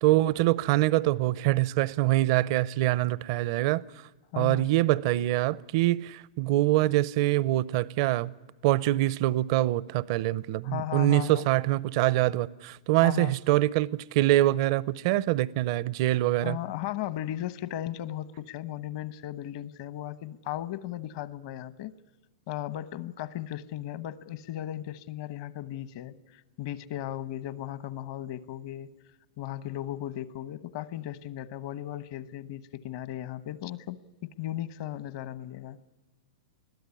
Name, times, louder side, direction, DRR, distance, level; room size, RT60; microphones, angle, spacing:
voice 1, 0.0-3.8 4.4-8.3 8.6-16.6, right 16 dB, 50° right, 0.6 m, -24 dB
voice 2, 4.3-4.7 10.6-11.5 13.0-13.4 16.4-21.9 22.5-28.9 29.4-35.8, left 13 dB, 55° left, 1.1 m, -36 dB
21.5 x 14.0 x 9.8 m
hypercardioid pair, 130°, 3 cm